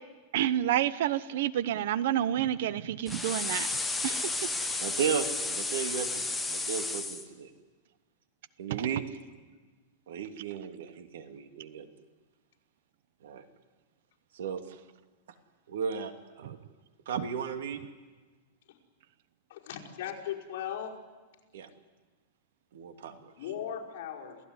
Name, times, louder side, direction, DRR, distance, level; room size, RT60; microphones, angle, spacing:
voice 1, 0.3-3.7 4.0-4.2 8.7-8.8 17.2-17.3, right 11 dB, 60° right, 16 dB, 0.9 m, -29 dB
sound 1, 3.1-7.2, left 3 dB, 5° left, 1.3 m, -32 dB
voice 2, 4.8-7.5 8.6-9.0 10.1-11.9 13.2-13.4 14.3-14.6 15.7-16.6 17.1-17.8 21.5-21.7 22.7-23.3, right 7 dB, 85° right, 6 dB, 2.6 m, -35 dB
voice 3, 19.5-21.0 23.4-24.4, left 9 dB, 55° left, -3 dB, 5.3 m, -37 dB
28.0 x 16.5 x 9.8 m, 1.3 s
supercardioid pair, 175°, 0 cm